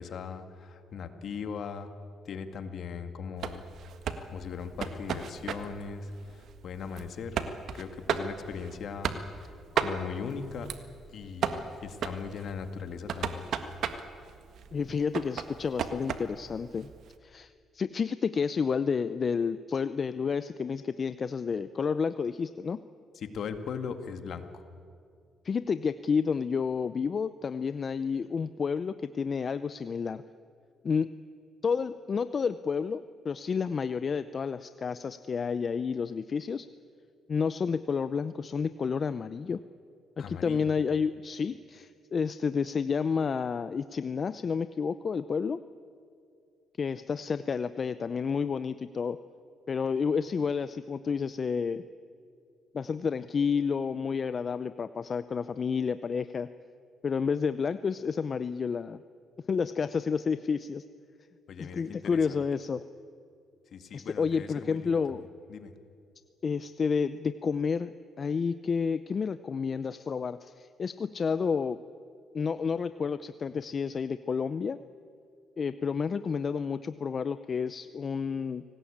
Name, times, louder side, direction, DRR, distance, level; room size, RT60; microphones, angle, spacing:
voice 1, 0.0-1.9 2.3-3.6 4.3-7.4 7.7-9.1 9.7-10.7 11.1-13.5 23.2-24.6 40.2-40.7 61.5-62.4 63.7-65.2 65.5-65.7, left 6 dB, 65° left, 8 dB, 2.0 m, -39 dB
sound 1, 3.4-17.1, right 7 dB, 70° right, 1.6 m, -36 dB
voice 2, 14.7-16.9 17.2-22.8 25.4-30.2 30.8-31.1 31.6-36.7 37.3-39.6 40.2-45.6 46.8-49.2 49.7-51.8 52.7-56.5 57.0-59.0 59.5-60.8 61.6-62.8 63.9-65.3 66.4-71.8 72.3-74.8 75.6-78.6, left 6 dB, 45° left, 13 dB, 0.6 m, -30 dB
26.5 x 18.5 x 8.7 m, 2.4 s
cardioid pair, 90°, 0 cm